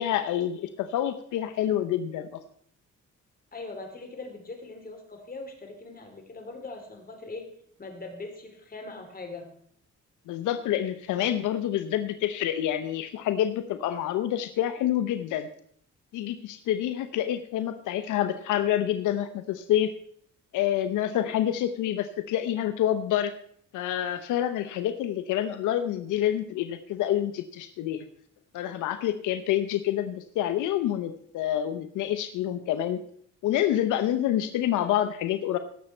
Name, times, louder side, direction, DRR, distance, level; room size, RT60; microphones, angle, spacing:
voice 1, 0.0-2.4 10.3-15.5 16.1-19.9 20.5-23.3 23.7-28.0 28.5-33.0 33.4-35.6, left 11 dB, 85° left, 9 dB, 0.8 m, -27 dB
voice 2, 3.5-7.5 7.8-9.5, left 3 dB, 30° left, 3 dB, 3.2 m, -41 dB
17.5 x 7.1 x 4.4 m, 0.62 s
cardioid pair, 90°, 30 cm